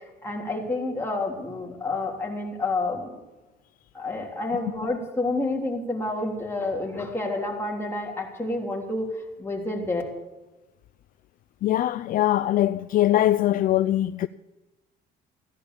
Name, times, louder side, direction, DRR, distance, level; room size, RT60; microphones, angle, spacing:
voice 1, 0.2-3.1 3.9-9.1 9.4-10.0, left 2 dB, 15° left, 3.4 m, -29 dB
voice 2, 11.6-14.3, left 13 dB, 55° left, 0.4 m, -22 dB
16.0 x 10.5 x 6.9 m
cardioid pair, 110°, 17 cm